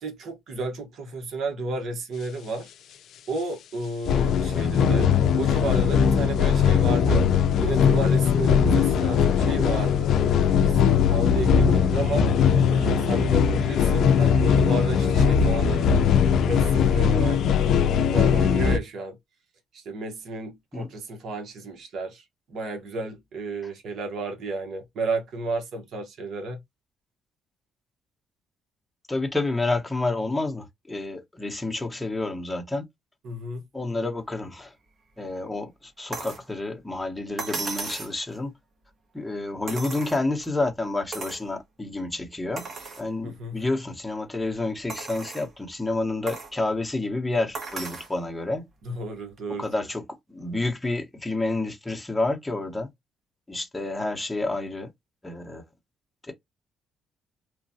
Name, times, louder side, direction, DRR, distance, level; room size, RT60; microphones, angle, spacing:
voice 1, 0.0-2.7 3.3-7.2 7.6-10.1 10.6-10.8 11.1-12.3 12.7-16.0 16.4-17.4 18.0-19.2 19.7-22.2 22.5-26.6 33.2-33.6 43.2-43.6 48.8-49.7, right 2 dB, 70° right, 1.0 m, -32 dB
sound 1, 4.1-18.8, left 7 dB, 75° left, 0.3 m, -20 dB
voice 2, 29.1-32.8 33.7-34.7 35.2-38.5 39.1-42.7 43.0-48.6 49.5-50.0 50.3-52.9 53.5-54.9 55.2-55.6 56.3-56.4, left 2 dB, 10° left, 0.9 m, -29 dB
sound 2, 36.1-36.5 37.4-38.2 39.7-40.5 41.1-41.5 42.0-42.1 42.6-43.1 43.7-43.8 44.9-45.5 46.3-46.5 47.5-48.1 49.4-49.5, right 4 dB, 50° right, 1.1 m, -35 dB
3.1 x 2.2 x 2.6 m
cardioid pair, 90°, 0 cm